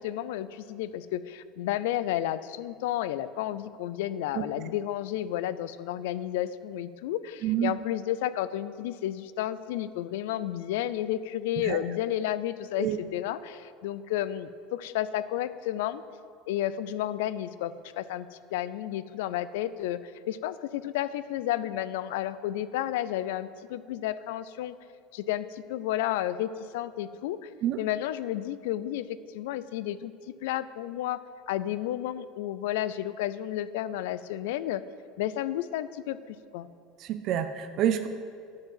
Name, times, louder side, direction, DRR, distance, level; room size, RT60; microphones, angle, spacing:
voice 1, 0.0-16.0 16.5-24.7 25.1-27.5 27.8-29.1 29.3-30.1 30.4-31.2 31.5-34.8 35.2-36.2 36.5-36.7, left 12 dB, 85° left, 15 dB, 0.4 m, -32 dB
voice 2, 7.4-7.8 11.6-11.8 12.8-13.0 27.6-27.8 37.0-38.1, right 11 dB, 35° right, 9 dB, 0.4 m, -28 dB
10.5 x 4.7 x 7.6 m, 2.2 s
cardioid pair, 175°, 0 cm